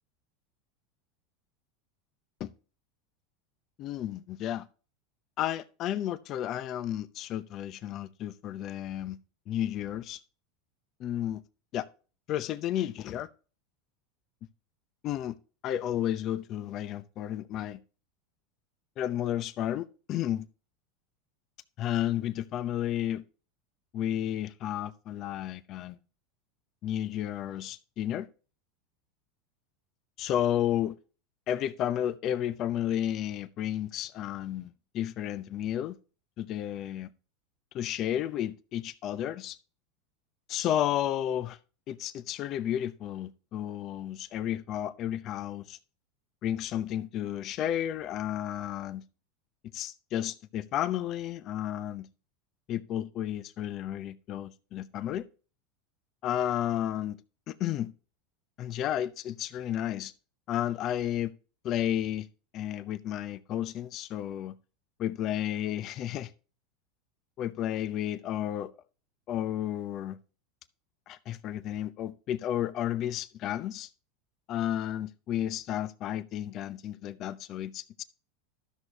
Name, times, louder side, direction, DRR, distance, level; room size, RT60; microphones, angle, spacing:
voice 1, 3.8-4.6 5.4-9.2 9.5-10.2 11.0-11.4 11.7-11.9 12.3-13.3 15.0-15.3 15.6-17.8 19.0-20.5 21.8-23.2 23.9-26.0 26.8-28.3 30.2-31.0 31.5-36.0 36.4-37.1 37.7-39.6 40.5-41.6 41.9-45.8 46.4-49.0 49.7-52.1 52.7-55.3 56.2-57.2 57.5-57.9 58.6-60.1 60.5-61.3 61.6-62.3 62.5-64.5 65.0-66.3 67.4-68.7 69.3-70.2 71.1-73.9 74.5-78.0, left 11 dB, 45° left, 0.7 m, -32 dB
13.0 x 6.4 x 2.9 m
supercardioid pair, 115°, 0 cm